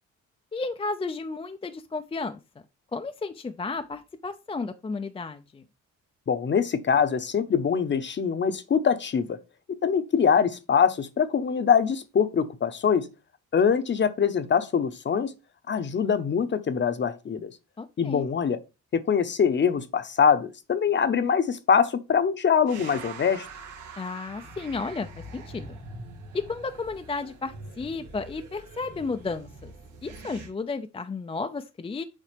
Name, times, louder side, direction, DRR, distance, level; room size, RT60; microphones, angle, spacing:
voice 1, 0.5-2.4 2.9-5.6 17.8-18.3 24.0-25.1 25.3-25.8 26.3-29.7 30.0-32.0, left 3 dB, 20° left, 0.4 m, -33 dB
voice 2, 6.3-9.4 9.7-13.1 13.5-15.3 15.7-17.5 18.0-18.6 18.9-23.5, left 7 dB, 40° left, 0.8 m, -23 dB
sound 1, 22.7-30.5, right 3 dB, 85° right, 1.7 m, -44 dB
7.4 x 5.0 x 3.3 m
cardioid pair, 90°, 30 cm